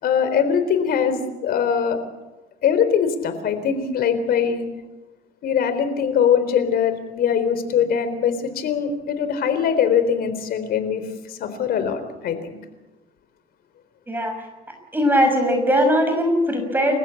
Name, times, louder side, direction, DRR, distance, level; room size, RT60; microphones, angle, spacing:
voice 1, 0.0-2.0 2.6-4.6 5.4-11.0 11.3-12.6, left 7 dB, 65° left, 10 dB, 4.0 m, -22 dB
voice 2, 14.9-17.0, equal, 10° right, 4 dB, 5.9 m, -19 dB
29.5 x 15.5 x 8.5 m, 1.1 s
cardioid pair, 110°, 17 cm